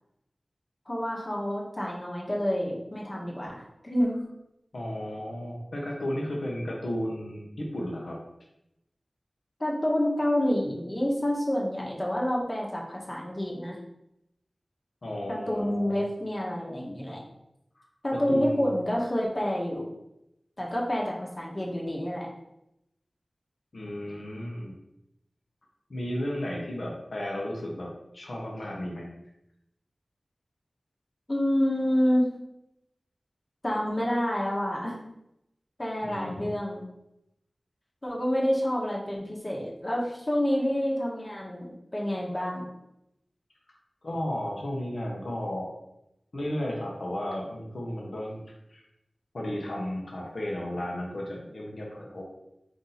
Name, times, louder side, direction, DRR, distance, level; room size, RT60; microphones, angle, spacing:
voice 1, 0.9-4.2 9.6-13.8 15.3-17.2 18.0-19.9 20.6-22.3 31.3-32.3 33.6-34.9 35.8-36.8 38.0-42.6, equal, 35° left, -3 dB, 1.0 m, -28 dB
voice 2, 4.7-8.2 15.0-16.0 18.1-18.6 23.7-24.7 25.9-29.1 36.0-36.5 44.0-45.7 46.3-48.4 48.7-48.8 49.3-52.2, left 1 dB, 80° left, -1 dB, 0.8 m, -34 dB
3.9 x 2.6 x 4.0 m, 0.86 s
wide cardioid pair, 60°, 0 cm